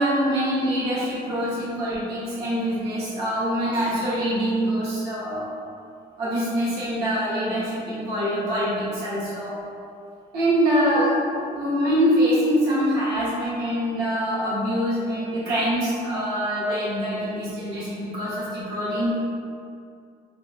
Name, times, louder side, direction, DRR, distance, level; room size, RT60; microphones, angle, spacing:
voice 1, 0.0-5.5 6.2-9.6 10.3-19.2, equal, 75° right, -9 dB, 0.9 m, -24 dB
2.8 x 2.2 x 2.4 m, 2.4 s
cardioid pair, 110°, 17 cm